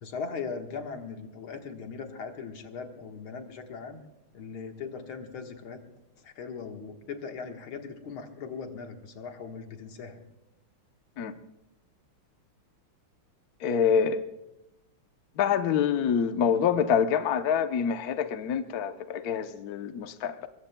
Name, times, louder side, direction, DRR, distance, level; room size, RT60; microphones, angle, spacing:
voice 1, 0.0-4.0 4.3-5.8 6.2-10.2, left 5 dB, 75° left, 4 dB, 2.3 m, -39 dB
voice 2, 13.6-14.2 15.4-20.5, left 7 dB, 60° left, 8 dB, 1.1 m, -26 dB
23.5 x 22.0 x 2.2 m, 0.93 s
omnidirectional pair, 2.3 m